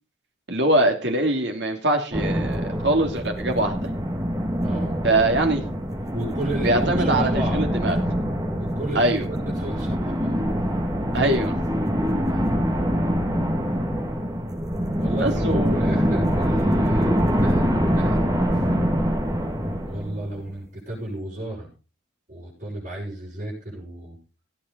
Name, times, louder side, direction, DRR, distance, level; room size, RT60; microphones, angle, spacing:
voice 1, 0.5-3.9 5.0-5.6 6.6-8.0 8.9-9.2 11.1-11.5 15.2-15.9, right 1 dB, 60° right, 3 dB, 2.7 m, -22 dB
sound 1, 2.1-20.6, equal, 15° right, 2.1 m, -24 dB
voice 2, 4.6-5.0 6.1-7.6 8.6-10.4 12.3-12.6 15.0-18.6 19.8-21.7 22.3-24.2, right 1 dB, 40° right, -5 dB, 7.0 m, -33 dB
17.5 x 8.7 x 4.1 m, 0.32 s
head